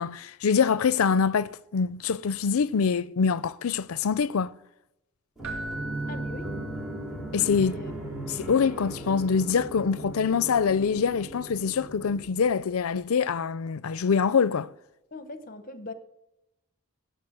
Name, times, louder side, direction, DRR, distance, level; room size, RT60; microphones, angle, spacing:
voice 1, 0.0-4.5 7.3-7.8 8.3-14.7, left 6 dB, 85° left, 0.5 m, -25 dB
sound 1, 5.4-12.9, right 1 dB, ahead, 2.4 m, -37 dB
Keyboard (musical), 5.4-7.4 10.6-10.8, right 2 dB, 65° right, 2.3 m, -40 dB
voice 2, 6.1-6.5 7.6-7.9 15.1-15.9, left 2 dB, 40° left, 1.0 m, -40 dB
11.5 x 7.0 x 7.8 m
head